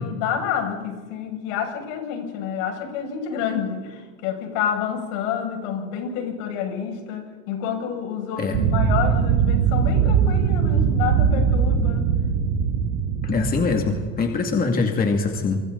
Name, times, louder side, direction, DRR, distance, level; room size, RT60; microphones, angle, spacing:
voice 1, 0.0-12.1, left 8 dB, 70° left, 2 dB, 7.0 m, -28 dB
sound 1, 8.5-14.3, right 7 dB, 60° right, 2.8 m, -21 dB
voice 2, 13.2-15.6, left 4 dB, 20° left, 2 dB, 2.4 m, -23 dB
29.0 x 24.5 x 4.1 m, 1.5 s
supercardioid pair, 135°, 38 cm